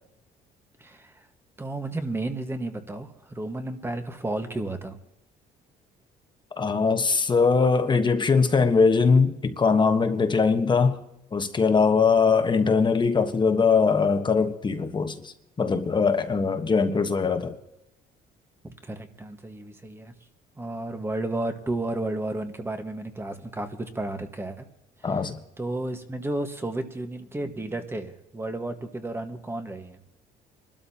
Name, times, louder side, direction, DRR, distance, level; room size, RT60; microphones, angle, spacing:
voice 1, 0.8-1.2 1.6-5.0 16.3-16.7 18.6-20.1 20.6-24.7 25.0-25.2 25.6-30.0, right 2 dB, 15° right, 1.5 m, -32 dB
voice 2, 6.6-11.0 11.3-17.6 25.0-25.4, left 5 dB, 25° left, 1.3 m, -21 dB
25.5 x 12.5 x 2.9 m
cardioid pair, 110°, 17 cm